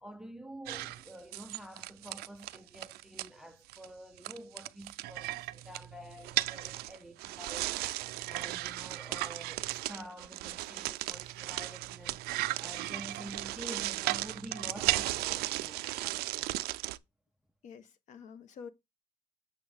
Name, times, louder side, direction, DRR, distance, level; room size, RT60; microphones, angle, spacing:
voice 1, 0.0-7.8 8.3-12.3 12.6-16.5, right 1 dB, 5° right, 0.4 m, -48 dB
sound 1, 0.7-3.3 3.7-3.9 4.2-17.0, right 17 dB, 80° right, 0.4 m, -36 dB
voice 2, 17.6-18.7, left 6 dB, 50° left, 0.9 m, -48 dB
6.8 x 6.2 x 3.4 m
cardioid pair, 175°, 16 cm